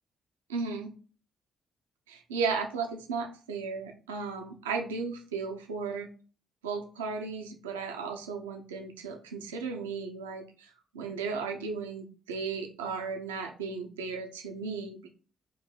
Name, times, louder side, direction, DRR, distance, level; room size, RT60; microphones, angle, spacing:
voice 1, 0.5-0.9 2.1-6.1 6.6-15.1, right 5 dB, 85° right, 3 dB, 0.5 m, -35 dB
4.5 x 2.7 x 3.7 m, 0.39 s
hypercardioid pair, 45°, 0 cm